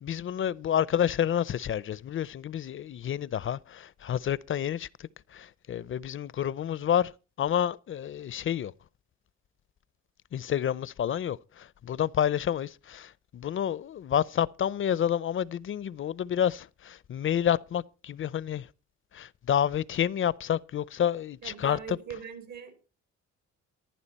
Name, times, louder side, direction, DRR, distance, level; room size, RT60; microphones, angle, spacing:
voice 1, 0.0-7.1 7.4-8.7 10.3-18.7 19.1-22.0, left 9 dB, 45° left, 0.5 m, -29 dB
voice 2, 21.4-22.7, right 7 dB, 70° right, 3.6 m, -40 dB
14.5 x 11.0 x 4.1 m
cardioid pair, 90°, 30 cm